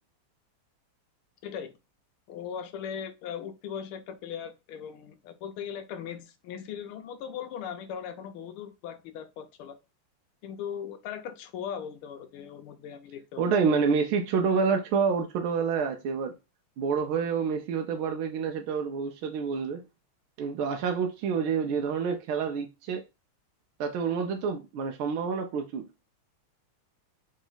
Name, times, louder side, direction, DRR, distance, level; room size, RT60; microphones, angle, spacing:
voice 1, 1.4-1.7 2.3-9.8 10.4-13.4, left 8 dB, 75° left, 1.5 m, -39 dB
voice 2, 13.4-16.3 16.8-19.8 20.4-23.0 23.8-25.8, right 5 dB, 75° right, 1.4 m, -28 dB
3.9 x 3.1 x 3.8 m
omnidirectional pair, 2.4 m